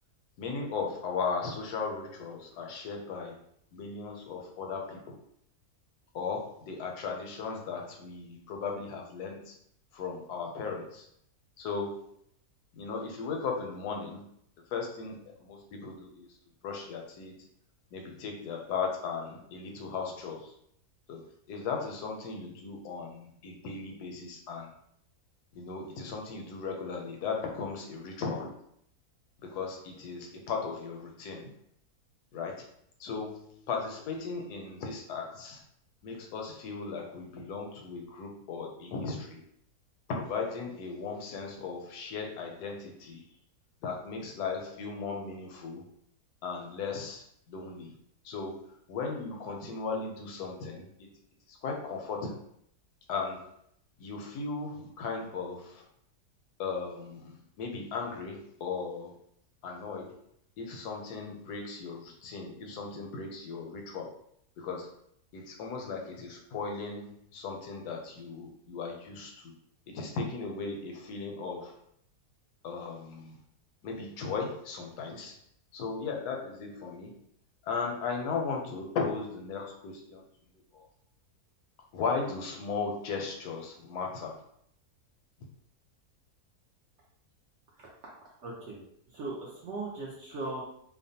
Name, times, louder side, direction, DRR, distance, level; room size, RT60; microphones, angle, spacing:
voice 1, 0.4-3.4 3.7-5.2 6.1-9.4 9.9-11.0 11.6-12.0 12.7-14.2 14.7-16.3 16.6-17.3 17.9-20.5 21.1-21.2 21.5-24.7 25.6-28.5 29.4-31.5 32.3-32.6 33.0-35.6 36.0-39.4 40.1-43.2 43.8-45.8 46.4-47.9 48.2-48.6 48.9-50.9 51.6-52.4 53.1-53.5 54.0-55.8 56.6-59.1 59.6-60.2 60.6-64.1 64.6-64.9 65.3-69.5 69.9-71.7 72.6-73.4 73.8-75.3 75.7-77.1 77.7-80.2 80.7-80.8 81.9-84.4, left 4 dB, 80° left, 1 dB, 1.1 m, -36 dB
voice 2, 88.4-88.8 89.1-90.6, right 2 dB, 65° right, -5 dB, 0.7 m, -38 dB
2.8 x 2.1 x 2.7 m, 0.70 s
omnidirectional pair, 1.7 m